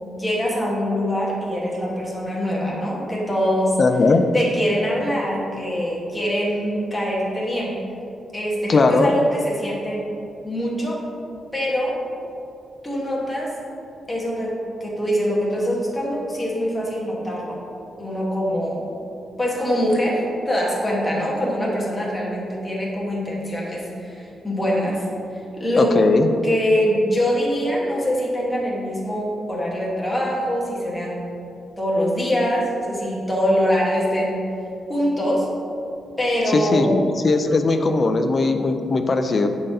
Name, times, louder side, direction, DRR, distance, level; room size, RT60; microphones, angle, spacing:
voice 1, 0.0-3.8 4.3-7.8 8.3-10.1 10.4-11.0 11.5-12.0 12.8-13.5 14.1-17.6 18.0-18.9 19.4-25.0 25.6-26.0 26.4-31.3 31.8-34.4 34.9-35.5 36.2-37.0, equal, 10° left, -4 dB, 1.2 m, -23 dB
voice 2, 3.8-4.2 8.7-9.1 25.8-26.3 36.5-39.5, left 3 dB, 35° left, 7 dB, 0.4 m, -19 dB
10.5 x 3.8 x 2.7 m, 2.7 s
wide cardioid pair, 160°, 0 cm